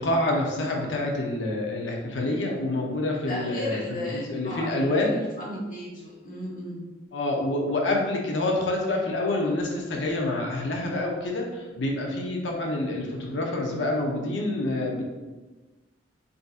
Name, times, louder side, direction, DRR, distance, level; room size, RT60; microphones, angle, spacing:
voice 1, 0.0-5.2 7.1-15.0, left 2 dB, 85° left, -1 dB, 0.6 m, -27 dB
voice 2, 3.3-6.8, left 1 dB, 50° left, -6 dB, 1.0 m, -35 dB
3.8 x 2.6 x 2.4 m, 1.2 s
head